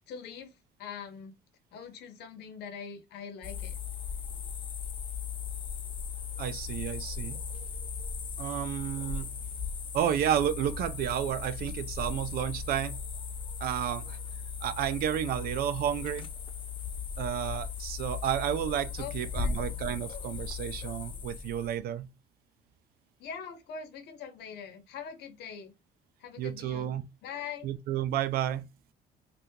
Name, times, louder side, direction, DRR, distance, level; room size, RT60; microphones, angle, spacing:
voice 1, 0.1-0.5 0.8-1.3 1.7-3.8 19.0-19.1 19.4-19.6 23.2-25.7 26.2-26.9 27.2-27.7, left 7 dB, 75° left, 0.9 m, -42 dB
sound 1, 3.4-21.8, left 6 dB, 30° left, 0.5 m, -37 dB
voice 2, 6.4-7.4 8.4-9.3 9.9-13.0 13.6-14.2 14.6-16.3 17.2-22.1 26.4-27.0 27.6-28.6, right 10 dB, 65° right, 0.4 m, -31 dB
2.8 x 2.4 x 3.5 m
cardioid pair, 110°, 17 cm